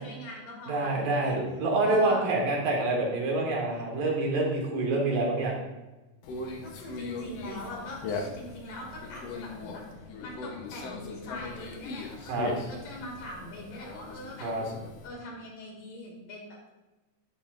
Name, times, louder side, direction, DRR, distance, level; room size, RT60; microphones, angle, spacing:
voice 1, 0.0-1.4 1.8-2.4 6.6-9.8 10.2-14.5 15.0-16.6, left 1 dB, 80° left, -1 dB, 4.0 m, -42 dB
voice 2, 0.7-5.6 12.3-12.5 14.4-14.7, right 2 dB, 85° right, -1 dB, 3.7 m, -27 dB
Conversation, 6.2-15.1, left 3 dB, 65° left, 1.8 m, -39 dB
11.0 x 10.5 x 2.5 m, 1.1 s
omnidirectional pair, 3.8 m